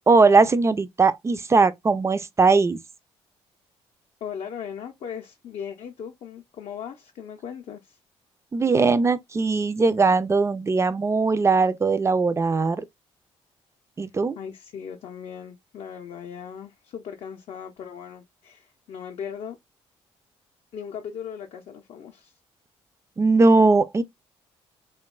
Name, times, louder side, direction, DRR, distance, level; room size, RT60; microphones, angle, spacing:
voice 1, 0.1-2.8 8.5-12.8 14.0-14.4 23.2-24.0, right 4 dB, 20° right, 0.3 m, -20 dB
voice 2, 4.2-8.0 14.4-19.6 20.7-22.3, left 8 dB, 60° left, 0.4 m, -38 dB
2.8 x 2.2 x 2.2 m
supercardioid pair, 60°, 13 cm